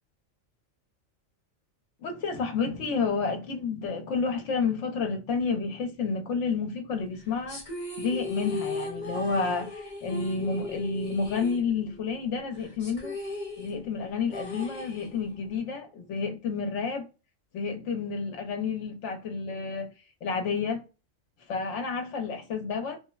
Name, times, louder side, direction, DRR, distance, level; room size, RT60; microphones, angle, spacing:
voice 1, 2.0-7.6 8.0-13.2 13.6-17.1 17.5-19.9 20.2-20.8 21.5-23.0, left 5 dB, 65° left, 0.9 m, -30 dB
sound 1, 7.5-12.2 12.4-12.5 12.8-15.5, left 2 dB, 35° left, 1.1 m, -37 dB
3.0 x 2.1 x 2.2 m
omnidirectional pair, 1.4 m